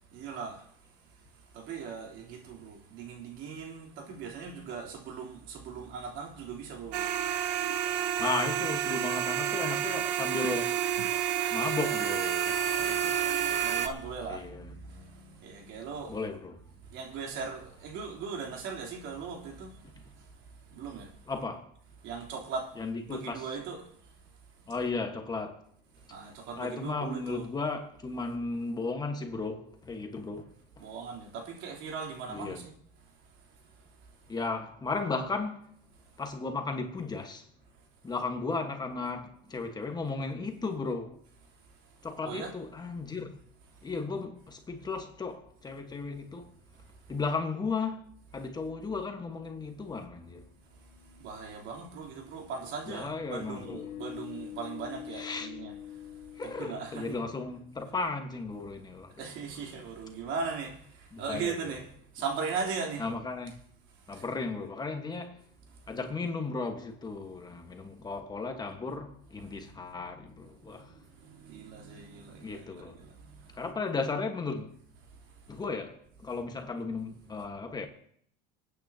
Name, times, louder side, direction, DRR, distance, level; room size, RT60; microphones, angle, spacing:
voice 1, 0.1-0.6 1.5-7.0 12.6-16.2 16.9-19.7 20.7-21.1 22.0-22.7 23.1-23.9 26.1-27.5 30.8-32.7 42.2-42.5 51.2-55.7 56.4-57.2 59.2-61.8 62.1-63.0 64.1-64.2 69.4-73.6, right 5 dB, 65° right, 3.3 m, -39 dB
sound 1, 6.9-13.9, right 9 dB, 85° right, 1.1 m, -29 dB
voice 2, 8.2-10.8 11.5-12.7 14.3-14.7 16.1-16.6 21.3-21.7 22.8-23.4 24.7-25.6 26.6-30.5 32.3-32.7 34.3-35.7 36.2-37.5 38.0-41.2 42.0-43.3 43.8-46.5 47.1-48.0 48.3-50.4 52.9-53.8 55.1-55.5 56.4-59.2 61.1-61.8 63.0-63.5 64.1-65.4 65.9-71.0 72.4-73.0 73.5-74.7 75.5-77.9, left 3 dB, 20° left, 1.4 m, -35 dB
sound 2, 50.5-57.3, left 11 dB, 60° left, 1.8 m, -46 dB
26.0 x 9.3 x 2.9 m
supercardioid pair, 120°, 21 cm